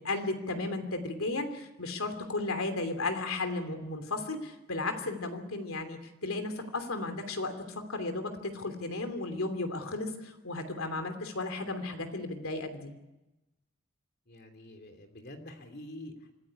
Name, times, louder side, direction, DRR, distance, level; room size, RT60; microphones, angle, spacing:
voice 1, 0.0-7.5 7.9-12.9, left 2 dB, 80° left, 7 dB, 3.0 m, -34 dB
voice 2, 14.3-16.3, left 1 dB, 50° left, 6 dB, 3.0 m, -46 dB
25.5 x 14.5 x 10.0 m, 1.0 s
head